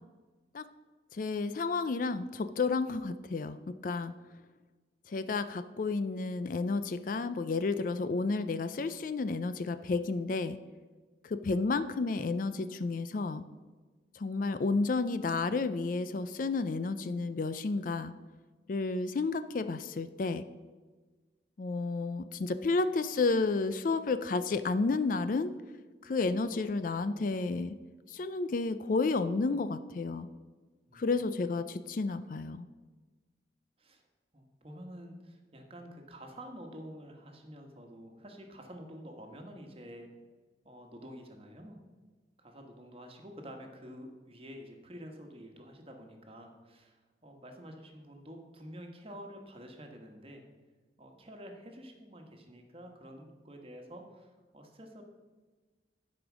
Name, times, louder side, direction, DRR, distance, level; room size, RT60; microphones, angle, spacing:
voice 1, 1.1-4.1 5.1-10.6 11.2-13.4 14.1-18.1 18.7-20.4 21.6-25.5 26.0-27.8 28.1-30.3 30.9-32.6, left 3 dB, 50° left, 12 dB, 0.4 m, -31 dB
voice 2, 34.3-40.1 40.6-41.8 42.4-50.4 51.0-55.0, equal, 35° right, 3 dB, 1.3 m, -49 dB
11.5 x 5.1 x 6.1 m, 1.3 s
head